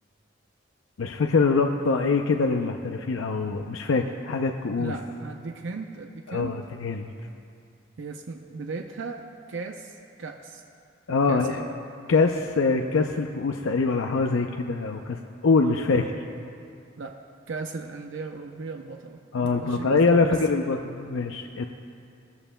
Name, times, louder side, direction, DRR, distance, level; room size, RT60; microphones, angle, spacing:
voice 1, 1.0-4.9 6.3-7.1 11.1-11.6 12.1-16.1 19.3-21.7, left 4 dB, 90° left, 4 dB, 0.6 m, -24 dB
voice 2, 4.8-6.5 8.0-10.6 11.3-11.8 17.0-17.1 17.5-20.7, right 4 dB, 65° right, 3 dB, 0.6 m, -37 dB
19.5 x 14.0 x 2.2 m, 2.5 s
head